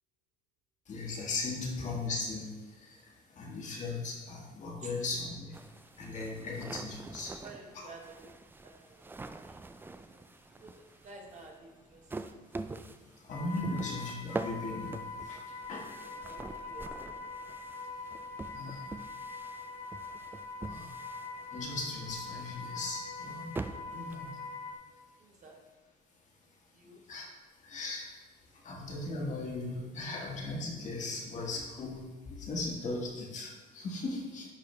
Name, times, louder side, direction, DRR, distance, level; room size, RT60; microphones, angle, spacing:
voice 1, 0.9-2.5 3.4-5.5 6.0-7.3 7.7-7.9 13.3-14.9 15.3-15.4 15.7-15.9 18.5-18.8 20.7-20.9 21.5-23.4 23.9-24.2 27.1-27.3 27.7-28.1 28.6-32.0 32.3-34.5, left 2 dB, 45° left, -1 dB, 1.5 m, -37 dB
sound 1, 5.5-24.7, right 3 dB, 10° right, 0.3 m, -45 dB
voice 2, 6.3-6.7 7.2-8.3 8.6-10.2 10.5-12.2 16.2-17.2 25.2-25.6 26.7-27.0, right 3 dB, 45° right, 1 dB, 1.3 m, -52 dB
sound 2, 13.3-24.8, left 4 dB, 80° left, 1.4 m, -43 dB
10.0 x 4.6 x 3.2 m, 1.2 s
cardioid pair, 110°, 17 cm